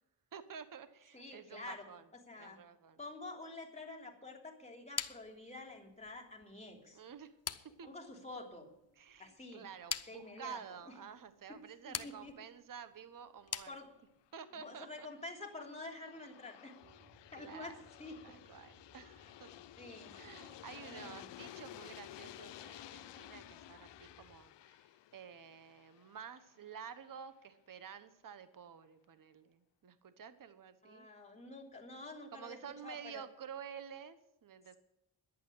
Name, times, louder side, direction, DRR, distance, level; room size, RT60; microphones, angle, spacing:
voice 1, 0.3-2.0 2.4-3.0 6.9-7.3 7.6-7.9 9.0-13.8 14.3-15.1 16.8-17.1 17.3-17.8 18.2-19.5 20.1-31.1 32.3-34.8, right 7 dB, 45° right, 12 dB, 1.1 m, -51 dB
voice 2, 1.1-1.9 2.3-2.6 3.0-7.0 7.8-8.7 9.2-9.6 10.1-10.6 10.9-11.0 11.5-11.6 11.8-12.3 13.7-13.9 14.5-16.8 17.3-18.2 19.8-20.1 20.8-21.3 30.8-33.2, left 2 dB, 15° left, 1 dB, 3.0 m, -48 dB
sound 1, 5.0-14.3, left 7 dB, 30° left, 0.8 m, -46 dB
Aircraft, 14.4-27.2, left 13 dB, 60° left, 0.6 m, -54 dB
sound 2, 16.8-24.4, right 1 dB, 20° right, 1.5 m, -66 dB
11.0 x 8.7 x 9.7 m, 0.85 s
cardioid pair, 85°, 47 cm